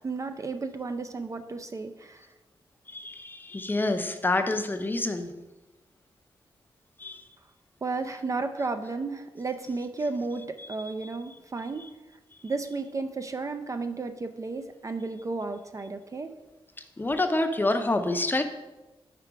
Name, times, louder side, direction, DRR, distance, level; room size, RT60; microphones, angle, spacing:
voice 1, 0.0-2.3 7.8-11.9 12.4-16.3, right 3 dB, 35° right, 8 dB, 0.4 m, -33 dB
voice 2, 2.9-5.3 7.0-7.2 17.0-18.4, left 2 dB, 20° left, 6 dB, 0.5 m, -27 dB
5.1 x 4.5 x 4.6 m, 1.1 s
cardioid pair, 85°, 10 cm